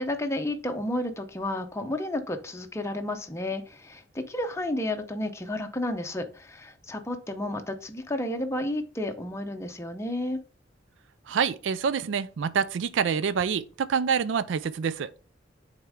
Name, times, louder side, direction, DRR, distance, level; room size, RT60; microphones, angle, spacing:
voice 1, 0.0-10.4, left 1 dB, 15° left, 0.7 m, -31 dB
voice 2, 11.3-15.1, right 6 dB, 70° right, 0.4 m, -27 dB
8.5 x 3.6 x 3.6 m
head